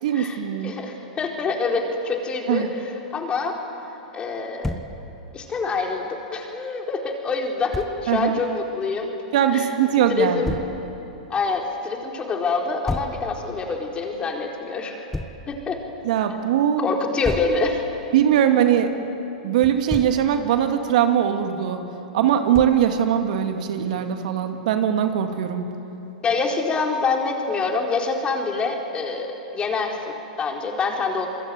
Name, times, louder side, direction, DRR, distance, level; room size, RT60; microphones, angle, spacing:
voice 1, 0.0-0.7 2.5-2.7 8.1-8.4 9.3-10.5 16.0-16.9 18.1-18.9 19.4-21.8 22.1-25.6, right 9 dB, 60° right, 6 dB, 2.4 m, -21 dB
voice 2, 0.6-2.7 3.1-3.6 4.1-4.7 5.3-9.1 9.5-9.7 10.1-10.5 11.3-15.0 15.5-15.8 16.8-17.8 26.2-31.3, left 4 dB, 20° left, 1 dB, 4.3 m, -26 dB
Thump thud, 4.6-4.9 7.7-7.9 10.5-10.7 12.9-13.2 15.1-15.4 17.2-17.6 19.6-20.2 22.5-22.9, left 1 dB, 5° left, 1.4 m, -30 dB
27.0 x 22.5 x 9.4 m, 3.0 s
hypercardioid pair, 115°, 5 cm